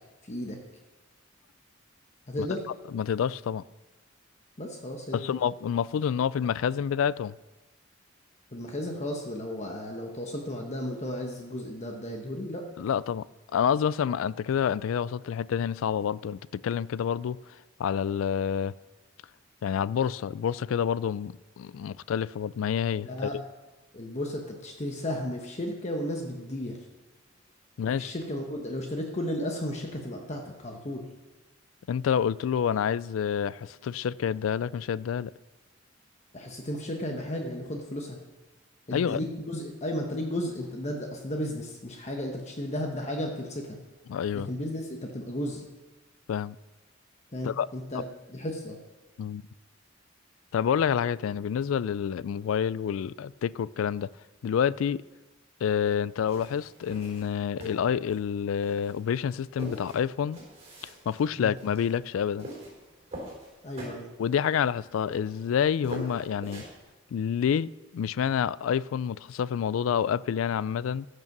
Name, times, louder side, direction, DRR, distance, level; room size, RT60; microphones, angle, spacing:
voice 1, 0.2-0.6 2.3-2.6 4.6-5.4 8.5-12.7 23.0-23.4 23.9-26.8 27.9-31.1 36.3-38.2 38.9-43.8 44.3-45.7 47.3-48.8 61.4-61.5 63.6-64.1, left 1 dB, 35° left, 1.1 m, -34 dB
voice 2, 2.9-3.6 5.1-7.3 12.8-13.3 13.5-17.4 17.8-18.7 19.6-23.4 27.8-28.1 31.9-35.3 38.9-39.2 44.1-44.5 46.3-46.6 47.4-47.7 49.2-49.4 50.5-54.1 54.4-55.0 55.6-60.4 60.8-62.5 64.2-66.6 67.1-71.1, left 8 dB, 85° left, 0.3 m, -28 dB
sound 1, 56.2-66.9, right 1 dB, 30° right, 4.0 m, -44 dB
14.5 x 6.7 x 6.0 m
head